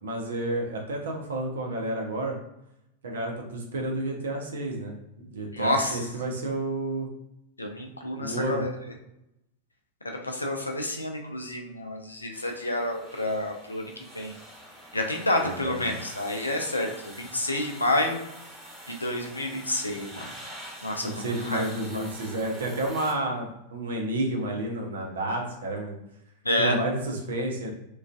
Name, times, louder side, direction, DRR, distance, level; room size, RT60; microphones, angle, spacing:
voice 1, 0.0-2.4 3.0-4.9 5.3-7.1 8.2-8.6 15.4-15.9 21.0-25.9 26.6-27.7, right 1 dB, 65° right, 1 dB, 0.5 m, -30 dB
voice 2, 5.5-6.0 7.6-8.7 10.0-14.3 14.9-18.2 18.9-20.3 20.8-21.6 21.9-22.1 26.4-26.8, left 1 dB, 80° left, 2 dB, 0.4 m, -29 dB
sound 1, 12.3-23.1, equal, ahead, 1.1 m, -45 dB
2.4 x 2.2 x 2.3 m, 0.86 s
figure-of-eight pair, 90°, 0 cm